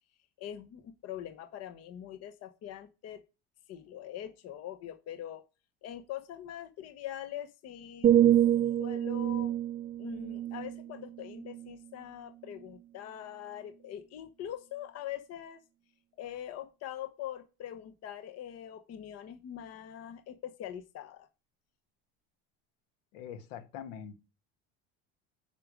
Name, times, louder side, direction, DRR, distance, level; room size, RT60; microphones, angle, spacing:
voice 1, 0.4-3.2 3.7-5.4 5.8-8.1 8.8-9.5 10.0-15.6 16.2-21.3, left 11 dB, 50° left, 1.1 m, -43 dB
sound 1, 8.0-11.9 12.4-12.7, right 11 dB, 25° right, 0.5 m, -27 dB
voice 2, 23.1-24.2, left 8 dB, 75° left, 1.4 m, -43 dB
10.0 x 5.3 x 5.0 m
supercardioid pair, 105°, 33 cm